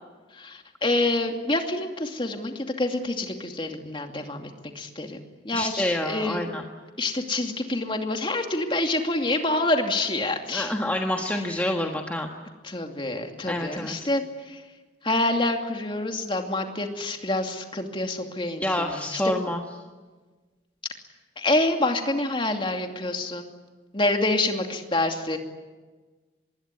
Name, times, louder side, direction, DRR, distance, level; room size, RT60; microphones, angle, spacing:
voice 1, 0.3-6.6 7.0-10.7 12.6-14.6 15.0-19.3 21.4-23.5 23.9-25.4, left 2 dB, 30° left, 4 dB, 2.6 m, -27 dB
voice 2, 5.5-6.6 10.5-12.3 13.5-14.1 18.6-19.6, left 1 dB, 10° left, 1 dB, 1.5 m, -27 dB
25.5 x 21.5 x 9.7 m, 1.3 s
head